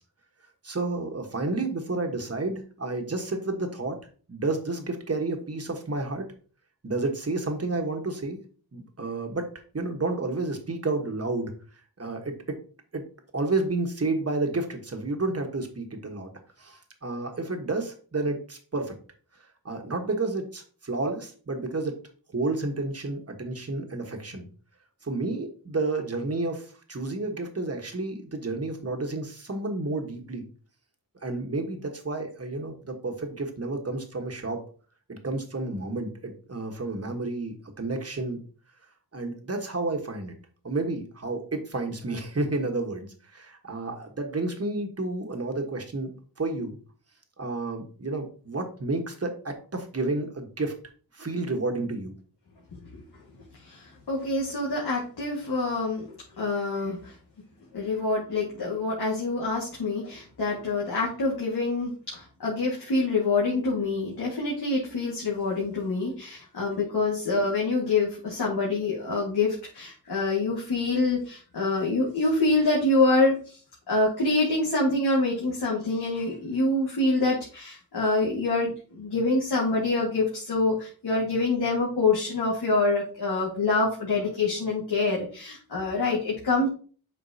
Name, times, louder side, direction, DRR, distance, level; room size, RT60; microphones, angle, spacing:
voice 1, 0.6-4.0 4.3-6.3 6.8-8.4 8.7-11.5 12.0-12.6 12.9-13.0 13.3-16.3 16.6-18.9 19.6-22.0 22.3-24.5 25.0-30.5 31.2-34.6 35.1-38.4 39.1-40.4 40.6-46.8 47.4-50.7 51.1-52.1, right 2 dB, 40° right, 4 dB, 1.3 m, -31 dB
voice 2, 52.7-53.0 53.6-56.1 56.4-57.1 57.7-73.6 73.9-86.7, left 3 dB, 85° left, -5 dB, 1.8 m, -26 dB
8.1 x 5.3 x 2.8 m, 0.40 s
wide cardioid pair, 80°, 38 cm